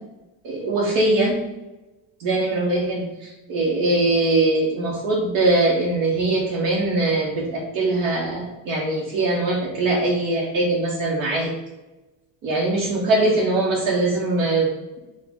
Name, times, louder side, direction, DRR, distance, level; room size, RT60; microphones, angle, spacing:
voice 1, 0.4-1.4 2.2-11.5 12.4-14.7, right 2 dB, 70° right, -3 dB, 1.0 m, -22 dB
4.9 x 2.4 x 3.7 m, 1.1 s
cardioid pair, 155°, 34 cm